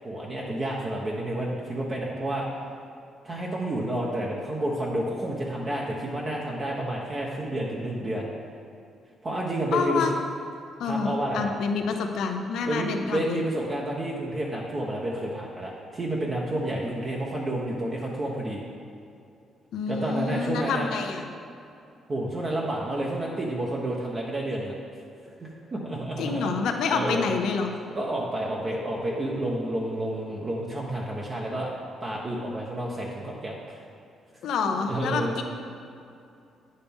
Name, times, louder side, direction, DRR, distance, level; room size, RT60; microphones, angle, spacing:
voice 1, 0.0-2.5 3.2-8.3 9.2-10.1 10.8-11.5 12.7-18.6 19.9-20.9 22.1-24.8 25.2-26.5 26.9-27.3 27.9-31.7 32.0-33.8 34.7-35.4, right 1 dB, 35° right, -3 dB, 1.0 m, -30 dB
voice 2, 9.7-10.1 10.8-13.4 19.7-21.3 26.2-27.7 34.4-35.4, left 5 dB, 75° left, 4 dB, 0.7 m, -28 dB
9.1 x 6.6 x 3.6 m, 2.5 s
cardioid pair, 90°, 0 cm